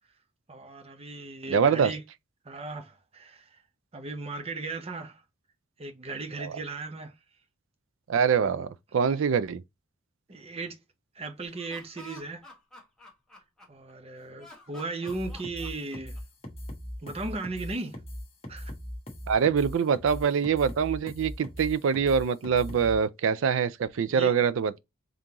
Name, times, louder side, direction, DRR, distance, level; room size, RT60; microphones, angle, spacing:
voice 1, 0.5-2.0 2.4-3.6 3.9-5.2 5.8-7.2 8.4-8.7 10.3-10.8 11.1-12.4 13.7-16.2 17.0-18.0 18.5-18.7 24.1-24.3, right 3 dB, 30° right, 0.7 m, -37 dB
voice 2, 1.5-1.9 6.4-6.5 8.1-8.7 8.9-9.6 19.3-24.8, right 6 dB, 70° right, 0.4 m, -24 dB
Laughter, 11.4-13.9 14.4-16.4, left 2 dB, 5° left, 1.2 m, -50 dB
sound 1, 15.1-23.0, equal, 30° left, 1.1 m, -39 dB
3.7 x 3.7 x 2.8 m
head